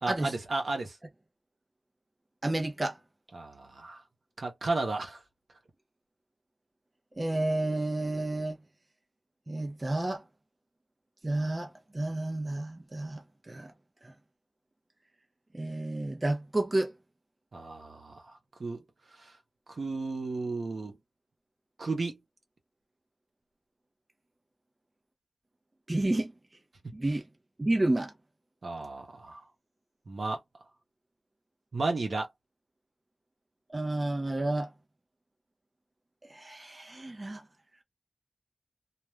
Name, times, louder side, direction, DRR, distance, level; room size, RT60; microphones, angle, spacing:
voice 1, 0.0-1.0 3.3-4.0 4.4-5.2 17.5-18.8 19.2-19.3 19.7-21.0 21.8-22.2 26.8-27.0 28.6-29.4 30.1-30.4 31.7-32.3, right 3 dB, 75° right, 0.9 m, -33 dB
voice 2, 2.4-3.0 7.2-8.6 9.5-10.2 11.2-13.7 14.0-14.1 15.5-16.9 25.9-26.3 26.9-27.2 27.6-28.1 33.7-34.7 36.3-37.4, right 2 dB, 35° right, 0.6 m, -30 dB
2.4 x 2.3 x 3.1 m
wide cardioid pair, 65°, 0 cm